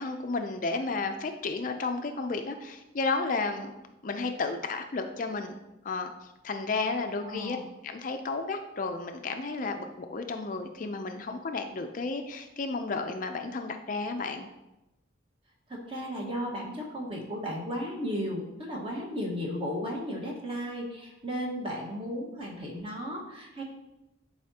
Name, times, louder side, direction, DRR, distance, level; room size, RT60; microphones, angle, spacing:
voice 1, 0.0-3.7 4.0-5.6 5.8-7.6 7.8-14.5, left 3 dB, 45° left, 6 dB, 0.4 m, -32 dB
voice 2, 7.2-7.6 15.7-23.6, equal, 30° right, -2 dB, 1.4 m, -35 dB
10.5 x 4.8 x 2.8 m, 0.96 s
head